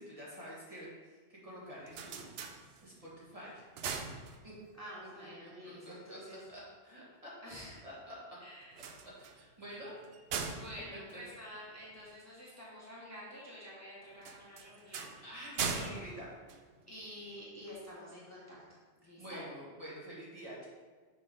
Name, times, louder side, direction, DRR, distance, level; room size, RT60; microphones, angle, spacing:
voice 1, 0.0-2.3 2.8-3.7 4.4-4.5 5.4-5.5 5.8-6.2 6.5-7.3 7.8-8.4 9.0-9.9 11.1-11.2 15.2-16.3 19.2-20.7, equal, 35° right, -7 dB, 1.7 m, -48 dB
sound 1, 1.6-3.1 3.5-4.8 8.6-12.1 14.2-17.2, right 5 dB, 70° right, 0.8 m, -41 dB
voice 2, 4.8-6.4 7.4-7.8 8.4-8.7 10.5-15.4 15.6-16.0 16.9-19.4, equal, 15° left, -7 dB, 1.4 m, -49 dB
6.2 x 3.5 x 5.1 m, 1.4 s
omnidirectional pair, 1.1 m